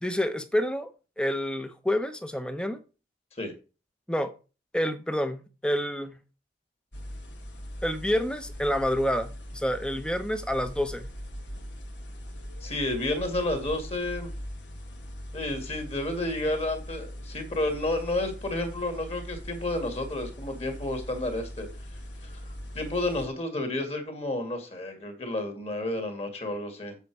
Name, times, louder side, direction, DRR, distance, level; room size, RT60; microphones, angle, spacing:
voice 1, 0.0-0.9 1.2-2.8 4.1-4.3 4.7-6.1 7.8-11.1, equal, 5° left, 0.8 m, -28 dB
sound 1, 6.9-23.3, equal, 70° left, 1.8 m, -41 dB
voice 2, 12.6-14.3 15.3-21.7 22.2-22.4 22.7-27.0, left 1 dB, 35° left, 2.2 m, -31 dB
8.1 x 7.3 x 4.7 m
head